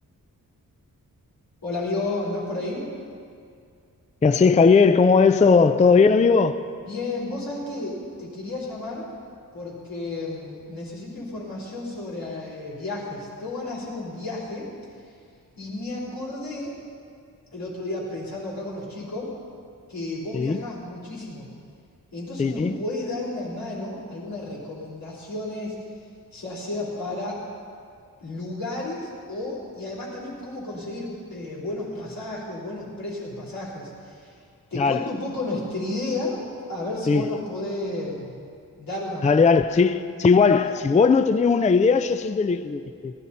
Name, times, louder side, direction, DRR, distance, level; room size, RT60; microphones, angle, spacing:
voice 1, 1.6-2.9 6.8-9.1 9.5-14.7 15.0-15.1 15.6-16.8 17.5-19.3 19.9-21.5 22.1-25.8 26.3-27.4 28.2-34.4 34.7-36.4 36.7-38.4 38.8-39.4 40.5-40.7, left 2 dB, 85° left, 4.1 m, -32 dB
voice 2, 4.2-6.6 20.3-20.6 22.4-22.8 34.8-35.1 37.1-37.4 39.2-43.1, left 5 dB, 20° left, 0.3 m, -18 dB
18.5 x 12.5 x 4.3 m
wide cardioid pair, 130°, 34 cm